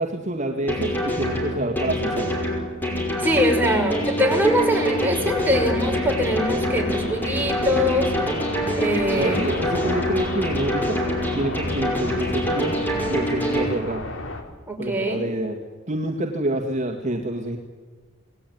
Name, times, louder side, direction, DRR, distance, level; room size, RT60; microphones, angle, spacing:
voice 1, 0.0-2.3 9.1-11.0 11.3-12.7 13.1-14.0 14.8-15.6 15.9-17.6, right 1 dB, 35° right, 2 dB, 2.2 m, -27 dB
sound 1, 0.7-13.7, equal, 10° left, 5.7 m, -25 dB
voice 2, 3.2-8.1 8.8-9.4 14.7-15.2, equal, 10° right, 1 dB, 5.3 m, -22 dB
sound 2, 5.2-14.4, left 2 dB, 75° left, 3.7 m, -34 dB
27.5 x 19.5 x 9.5 m, 1.4 s
head